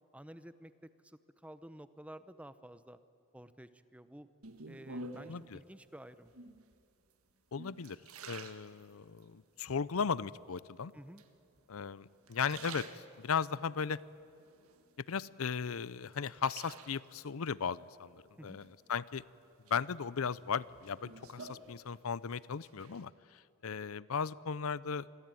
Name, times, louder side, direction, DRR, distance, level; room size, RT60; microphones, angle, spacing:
voice 1, 0.1-3.0 3.3-4.3 4.6-6.3 10.9-11.2 18.4-18.6, right 1 dB, 5° right, 12 dB, 0.8 m, -52 dB
sound 1, 4.4-5.5 6.3-6.8 7.3-9.3 9.8-10.4 11.2-11.8 12.2-13.5 14.0-15.2 15.6-17.2 18.6-19.2 19.7-22.3 22.5-23.0, right 3 dB, 90° right, 1.7 m, -50 dB
voice 2, 5.3-5.6 7.5-8.0 8.3-10.9 11.7-12.9 13.2-14.0 15.1-19.2 19.7-25.1, left 6 dB, 80° left, 20 dB, 0.6 m, -36 dB
27.5 x 22.0 x 9.1 m, 2.6 s
head